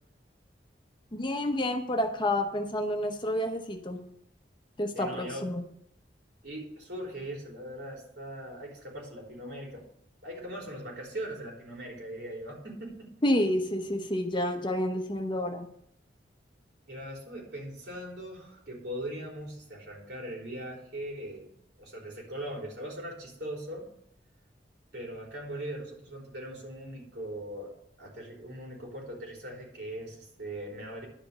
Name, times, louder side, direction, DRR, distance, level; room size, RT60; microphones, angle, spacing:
voice 1, 1.1-4.0 4.8-5.6 13.2-15.7, left 1 dB, 25° left, 5 dB, 0.9 m, -29 dB
voice 2, 4.9-5.4 6.4-9.8 10.2-13.1 16.9-21.5 21.8-23.9 24.9-27.7 28.0-31.1, right 1 dB, 65° right, -2 dB, 3.7 m, -40 dB
11.0 x 5.1 x 6.7 m, 0.71 s
head